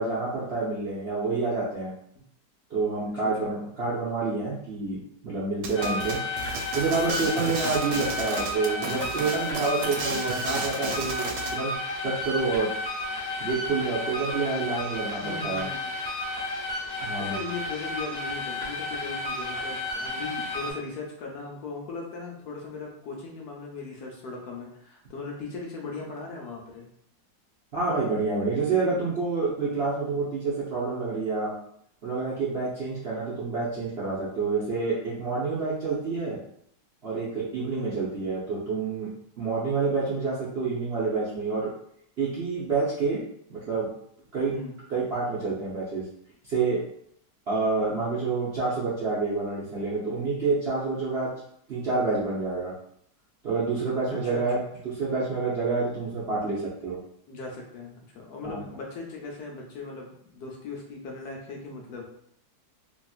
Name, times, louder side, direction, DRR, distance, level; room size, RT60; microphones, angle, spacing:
voice 1, 0.0-1.9 2.7-6.2 6.7-11.7 12.0-12.7 13.4-15.6 17.0-17.4 27.7-31.5 32.0-36.4 37.0-39.1 39.4-41.7 42.2-43.2 43.5-43.9 44.3-44.5 44.9-46.0 46.5-46.8 47.5-51.3 51.7-52.7 53.4-54.6 54.8-57.0 58.4-58.6, right 4 dB, 55° right, -8 dB, 0.7 m, -28 dB
sound 1, 5.6-11.6, right 4 dB, 80° right, 1.2 m, -34 dB
sound 2, 5.7-20.7, left 2 dB, 45° left, 0.9 m, -32 dB
voice 2, 15.2-15.9 17.2-26.9 37.7-38.0 44.5-44.7 54.1-54.7 57.3-62.1, left 3 dB, 70° left, -1 dB, 1.1 m, -38 dB
2.9 x 2.9 x 2.3 m, 0.69 s
omnidirectional pair, 1.9 m